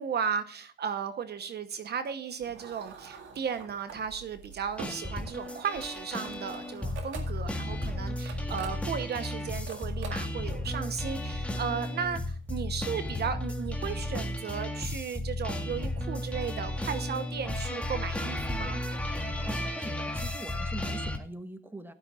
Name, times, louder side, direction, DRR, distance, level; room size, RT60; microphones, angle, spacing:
voice 1, 0.0-18.8, right 7 dB, 55° right, 10 dB, 1.0 m, -35 dB
sound 1, 2.4-13.0, right 5 dB, 75° right, 2.1 m, -47 dB
sound 2, 4.8-21.2, left 1 dB, 5° left, 1.8 m, -34 dB
voice 2, 19.4-21.9, right 2 dB, 10° right, 8 dB, 1.5 m, -43 dB
16.0 x 12.0 x 2.4 m, 0.40 s
cardioid pair, 90°, 20 cm